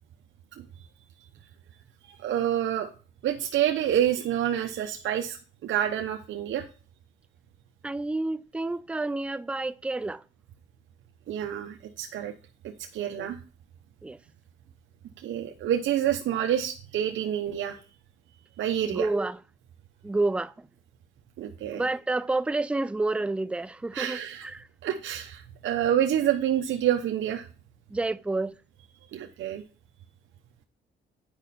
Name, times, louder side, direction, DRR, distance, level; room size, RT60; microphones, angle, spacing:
voice 1, 2.2-2.9 3.2-5.4 5.6-6.6 11.3-12.3 12.9-13.4 15.2-17.8 18.6-19.1 21.4-21.9 23.9-24.4 24.8-27.5 29.1-29.6, right 10 dB, 75° right, 0.9 m, -27 dB
voice 2, 7.8-10.2 13.2-13.3 14.0-14.2 18.9-19.4 20.0-20.5 21.7-24.6 27.9-28.5, right 2 dB, 5° right, 0.4 m, -29 dB
8.8 x 5.1 x 4.2 m
cardioid pair, 90°, 20 cm